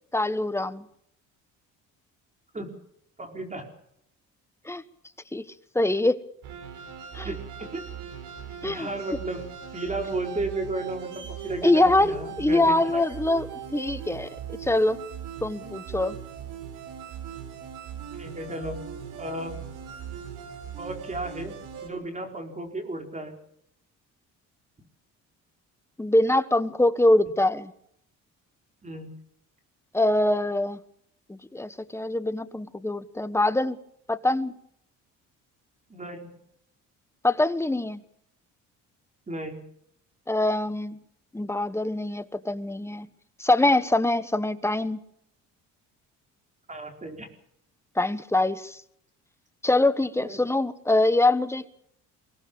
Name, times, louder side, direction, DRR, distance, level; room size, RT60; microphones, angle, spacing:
voice 1, 0.1-0.8 4.6-4.8 5.3-5.4 5.7-6.2 7.1-7.3 8.6-8.9 11.6-14.3 14.6-15.0 15.4-16.2 26.0-27.7 29.9-30.8 31.3-33.8 34.1-34.5 37.2-38.0 40.3-41.0 41.3-43.1 43.4-45.0 48.0-48.8 49.6-51.7, left 2 dB, 10° left, 13 dB, 1.3 m, -24 dB
voice 2, 3.2-3.7 7.2-7.8 8.6-9.5 9.7-13.2 18.2-18.8 19.2-19.6 20.8-21.5 21.8-23.4 28.8-29.1 35.9-36.3 39.3-39.6 46.7-47.3 50.2-50.4, right 2 dB, 20° right, 4 dB, 4.7 m, -34 dB
sound 1, 6.4-21.9, right 8 dB, 75° right, 5.1 m, -39 dB
23.5 x 18.0 x 7.1 m, 0.72 s
cardioid pair, 100°, 32 cm